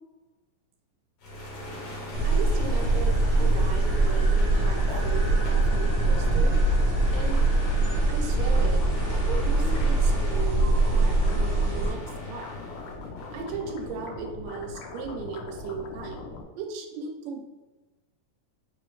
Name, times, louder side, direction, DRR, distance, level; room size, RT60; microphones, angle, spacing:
sound 1, 1.2-14.0, right 1 dB, 60° left, 2.0 m, -39 dB
sound 2, 2.1-11.9, right 2 dB, 50° right, 1.4 m, -23 dB
voice 1, 2.2-4.8 5.0-6.6 7.1-7.4 8.1-12.5 13.3-16.2 16.6-17.5, right 5 dB, 80° right, 3 dB, 2.2 m, -37 dB
sound 3, 2.6-16.4, left 3 dB, 80° left, 1.9 m, -40 dB
5.1 x 3.0 x 3.2 m, 1.2 s
omnidirectional pair, 3.9 m